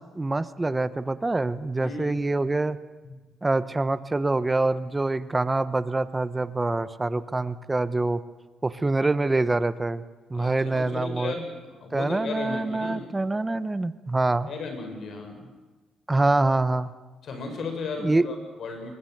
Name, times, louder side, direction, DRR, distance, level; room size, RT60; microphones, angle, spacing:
voice 1, 0.0-2.8 3.4-8.2 8.6-10.0 10.3-11.3 11.9-14.5 16.1-16.9 18.0-18.2, right 2 dB, 20° right, 14 dB, 1.1 m, -25 dB
voice 2, 1.8-2.2 3.0-3.2 10.3-13.0 14.5-15.5 17.2-18.9, left 4 dB, 65° left, 5 dB, 6.5 m, -35 dB
23.0 x 21.0 x 8.1 m, 1.3 s
cardioid pair, 90°, 0 cm